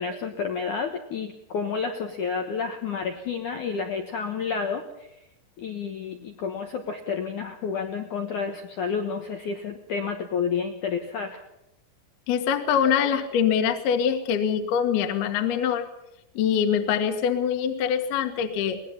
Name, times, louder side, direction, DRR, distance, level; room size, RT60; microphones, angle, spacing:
voice 1, 0.0-4.8 5.6-11.4, left 5 dB, 80° left, 5 dB, 1.7 m, -30 dB
voice 2, 12.3-15.9 16.3-18.8, left 8 dB, 60° left, 5 dB, 3.0 m, -24 dB
23.5 x 19.5 x 5.7 m, 0.84 s
omnidirectional pair, 5.9 m